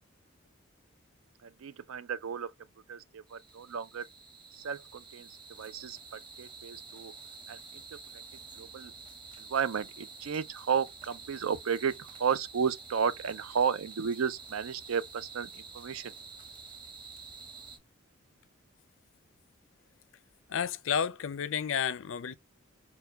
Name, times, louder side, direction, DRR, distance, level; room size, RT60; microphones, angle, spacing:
voice 1, 1.6-2.5 2.9-4.1 4.6-5.3 5.6-7.1 7.5-7.6 8.6-8.9 9.5-11.9 12.2-16.1, right 7 dB, 85° right, 0.4 m, -33 dB
sound 1, 3.3-17.8, right 4 dB, 25° right, 1.0 m, -49 dB
voice 2, 20.5-22.4, left 7 dB, 65° left, 0.4 m, -31 dB
4.3 x 2.2 x 3.8 m
head